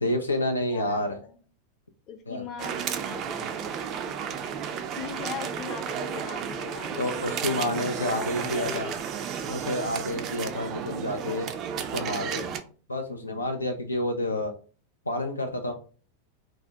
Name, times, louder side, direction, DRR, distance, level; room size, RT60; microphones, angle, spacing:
voice 1, 0.0-1.2 2.3-2.4 7.0-8.9 9.5-11.5 11.8-12.5 12.9-14.5 15.1-15.7, left 1 dB, 80° left, 5 dB, 0.3 m, -29 dB
voice 2, 0.7-1.4 2.1-4.2 5.0-7.6 8.2-9.3 13.2-13.4, left 7 dB, 35° left, 6 dB, 0.6 m, -41 dB
sound 1, 2.6-12.6, right 7 dB, 35° right, 0.3 m, -33 dB
2.5 x 2.0 x 3.2 m, 0.40 s
figure-of-eight pair, 90°, 0 cm